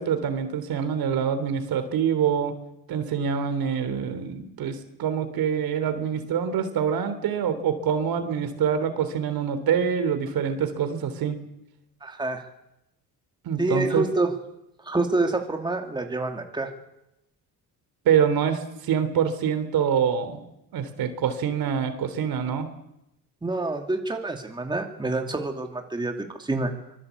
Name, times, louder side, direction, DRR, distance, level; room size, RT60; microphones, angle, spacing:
voice 1, 0.0-2.5 2.9-11.4 13.4-14.1 18.0-20.5 20.7-22.7, right 8 dB, 75° right, 10 dB, 3.4 m, -25 dB
voice 2, 12.0-12.4 13.6-14.3 14.8-16.7 23.4-26.7, right 2 dB, 10° right, 4 dB, 2.5 m, -27 dB
24.5 x 20.0 x 8.3 m, 0.87 s
cardioid pair, 135°, 36 cm